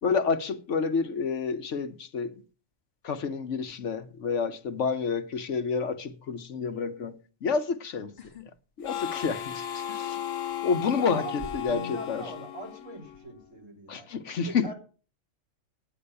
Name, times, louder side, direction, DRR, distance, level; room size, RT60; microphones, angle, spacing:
voice 1, 0.0-2.4 3.0-8.1 8.8-10.2 10.6-12.2 13.9-14.7, left 5 dB, 65° left, 1.2 m, -29 dB
sound 1, 8.2-8.5 8.8-9.5 10.5-10.6 11.4-12.7 13.0-13.5, left 4 dB, 35° left, 1.8 m, -46 dB
Harmonica, 8.8-13.3, left 10 dB, 85° left, 1.3 m, -35 dB
voice 2, 10.8-14.1 14.5-14.7, right 1 dB, 70° right, 4.7 m, -42 dB
9.7 x 9.4 x 6.7 m
omnidirectional pair, 1.4 m